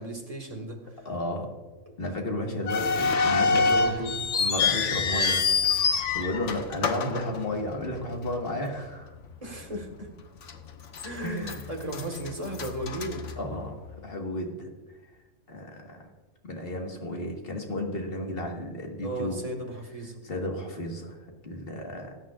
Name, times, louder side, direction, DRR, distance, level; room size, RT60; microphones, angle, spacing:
voice 1, 0.0-1.1 1.9-2.0 9.4-10.1 11.0-13.3 19.0-20.2, right 1 dB, 30° right, 2 dB, 1.7 m, -35 dB
voice 2, 1.1-1.5 2.0-9.2 11.2-11.7 13.4-14.7 15.5-16.1 16.4-19.4 20.2-22.1, left 1 dB, 50° left, 1 dB, 1.8 m, -33 dB
sound 1, 2.7-8.0 8.3-8.4 9.1-9.3 9.8-9.9 10.5-11.1 11.4-13.9, left 4 dB, 75° left, 1.2 m, -26 dB
19.5 x 9.1 x 2.5 m, 1.2 s
omnidirectional pair, 1.3 m